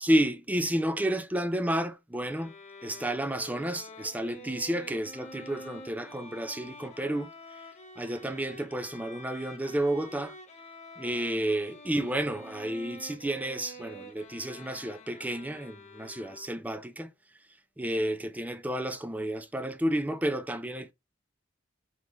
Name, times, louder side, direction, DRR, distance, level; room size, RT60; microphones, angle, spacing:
voice 1, 0.0-2.5 2.8-7.3 8.0-10.3 11.0-17.1 17.8-20.9, right 1 dB, 10° right, 0.5 m, -31 dB
Bowed string instrument, 2.2-16.8, left 1 dB, 35° left, 0.7 m, -47 dB
3.8 x 3.1 x 3.7 m
head